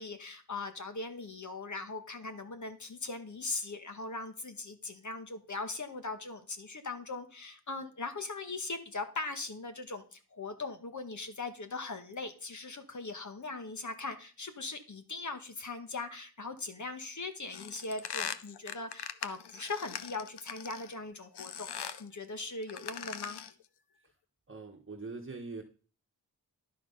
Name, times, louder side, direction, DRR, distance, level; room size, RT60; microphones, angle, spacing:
voice 1, 0.0-23.4, left 3 dB, 50° left, 7 dB, 1.7 m, -40 dB
sound 1, 17.5-20.9 21.4-22.1 22.6-23.6, left 8 dB, 90° left, 0.8 m, -41 dB
voice 2, 24.5-25.6, right 3 dB, 30° right, 2 dB, 1.3 m, -43 dB
11.0 x 5.9 x 5.7 m, 0.38 s
wide cardioid pair, 80°, 39 cm